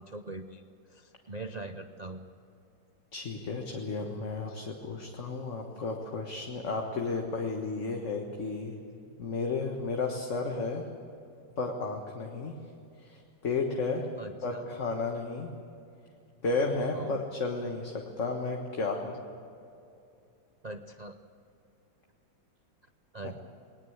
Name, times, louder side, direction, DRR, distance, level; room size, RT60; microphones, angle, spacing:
voice 1, 0.0-2.3 4.5-4.6 9.1-9.2 14.2-14.7 16.9-17.2 20.6-21.2 23.1-23.4, right 2 dB, 85° right, 7 dB, 0.3 m, -42 dB
voice 2, 3.1-8.8 9.2-10.9 11.6-12.5 13.0-14.1 14.4-15.5 16.4-19.1, left 3 dB, 40° left, 1 dB, 1.8 m, -33 dB
20.5 x 19.5 x 8.0 m, 2.7 s
omnidirectional pair, 2.0 m